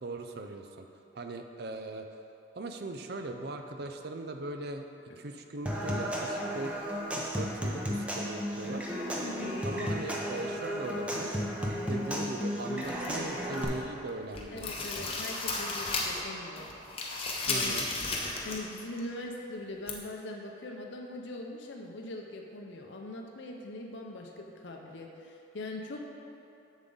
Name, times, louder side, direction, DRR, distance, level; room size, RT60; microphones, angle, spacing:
voice 1, 0.0-0.9 1.1-2.1 2.6-4.9 5.2-6.8 7.2-8.9 9.6-11.4 11.9-14.7 17.5-17.9, right 2 dB, 55° right, 5 dB, 0.5 m, -39 dB
Human voice / Acoustic guitar / Percussion, 5.7-13.6, equal, 5° right, 0.7 m, -34 dB
voice 2, 9.2-9.6 14.5-16.7 17.5-18.0 18.4-26.2, left 2 dB, 65° left, 1 dB, 0.6 m, -41 dB
sound 1, 12.8-13.8 14.2-16.3 16.6-18.7 19.0-19.1 19.9-20.0, left 3 dB, 30° left, 0.8 m, -34 dB
7.3 x 7.2 x 3.9 m, 2.8 s
head